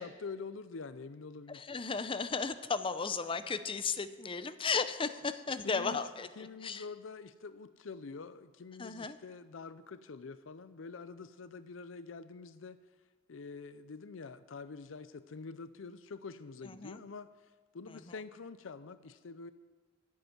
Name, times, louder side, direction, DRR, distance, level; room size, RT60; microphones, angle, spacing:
voice 1, 0.0-1.6 5.6-12.8 13.3-17.3 17.7-19.5, left 4 dB, 80° left, 13 dB, 0.5 m, -46 dB
voice 2, 1.5-6.3 6.6-6.8 8.8-9.2 16.7-17.0, left 5 dB, 25° left, 11 dB, 0.6 m, -35 dB
10.5 x 7.9 x 9.6 m, 1.3 s
head